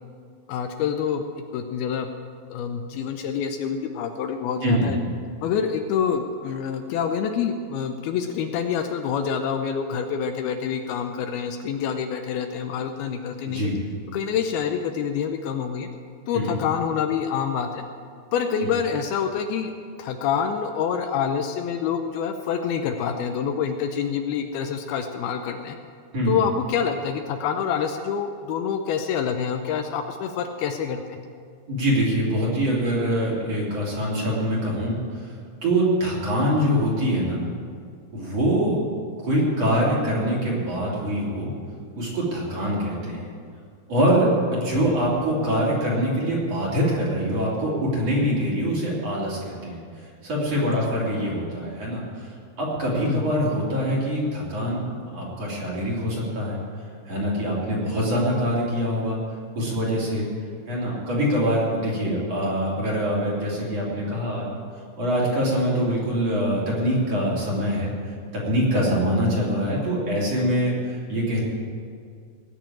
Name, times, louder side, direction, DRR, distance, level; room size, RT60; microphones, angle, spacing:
voice 1, 0.5-2.1 2.5-5.0 5.4-13.7 14.1-15.9 16.3-17.8 18.3-19.7 20.0-25.7 26.3-31.2 50.7-50.9 53.0-53.3, left 7 dB, 80° left, 6 dB, 2.5 m, -27 dB
voice 2, 4.6-4.9 13.4-13.7 16.3-16.6 26.1-26.4 31.7-35.0 35.6-37.4 38.1-38.8 39.2-41.5 42.0-43.3 43.9-49.8 50.2-52.3 52.6-54.8 55.1-56.6 57.1-59.2 59.6-60.3 60.7-64.5 65.0-67.9 68.3-71.4, equal, 40° right, -6 dB, 4.1 m, -24 dB
19.0 x 6.7 x 8.8 m, 2.2 s
omnidirectional pair, 4.7 m